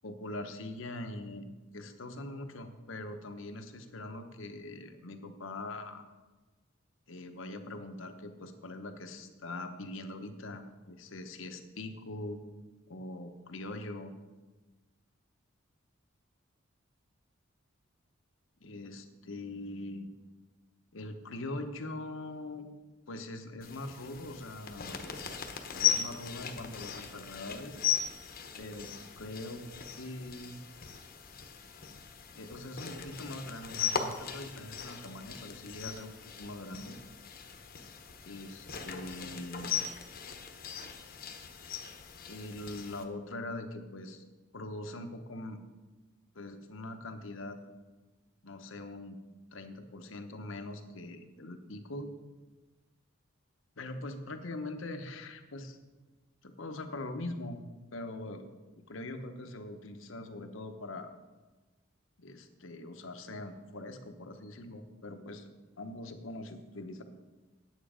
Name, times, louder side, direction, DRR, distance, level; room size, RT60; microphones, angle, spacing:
voice 1, 0.0-6.0 7.1-12.4 12.9-14.1 18.6-20.1 20.9-22.7 23.1-25.0 25.7-27.8 28.6-29.6 30.0-30.6 32.4-36.1 36.4-37.0 38.3-39.7 42.3-44.2 44.5-45.6 46.3-47.6 48.4-49.2 49.5-52.1 53.8-55.8 56.4-57.6 57.9-58.4 58.9-61.1 62.2-65.5 65.8-67.0, left 2 dB, 75° left, 6 dB, 0.9 m, -42 dB
sound 1, 23.6-43.0, left 8 dB, 45° left, 0.9 m, -38 dB
9.4 x 8.0 x 5.0 m, 1.2 s
head